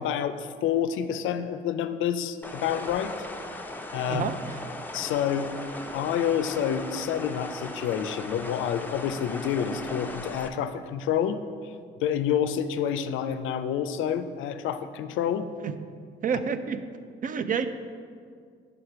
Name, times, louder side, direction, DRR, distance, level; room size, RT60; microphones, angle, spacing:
voice 1, 0.0-3.1 3.9-4.3 4.9-5.5 5.9-11.7 12.0-15.5, left 9 dB, 85° left, 10 dB, 0.4 m, -28 dB
sound 1, 2.4-10.5, left 1 dB, 10° left, 0.5 m, -38 dB
voice 2, 4.1-4.6 15.6-15.7 16.2-16.8 17.2-17.7, right 6 dB, 45° right, 11 dB, 0.4 m, -28 dB
5.0 x 4.9 x 5.9 m, 2.1 s
cardioid pair, 90°, 20 cm